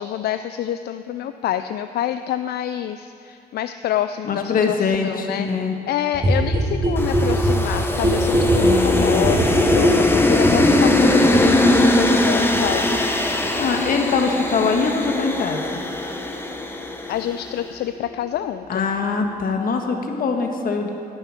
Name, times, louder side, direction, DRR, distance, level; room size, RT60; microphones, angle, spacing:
voice 1, 0.0-5.5 5.9-12.9 17.1-18.9, left 11 dB, 80° left, 10 dB, 0.4 m, -27 dB
voice 2, 4.2-5.7 8.6-10.0 13.6-15.8 18.7-20.9, left 4 dB, 60° left, 3 dB, 1.4 m, -23 dB
sound 1, 6.1-17.7 17.9-18.0 18.2-18.3 18.5-18.6 18.8-18.9 19.1-19.2 19.4-19.5, equal, 25° right, 2.2 m, -22 dB
sound 2, 7.0-17.3, left 1 dB, 15° left, 0.9 m, -21 dB
11.5 x 7.1 x 9.7 m, 2.7 s
cardioid pair, 120°, 16 cm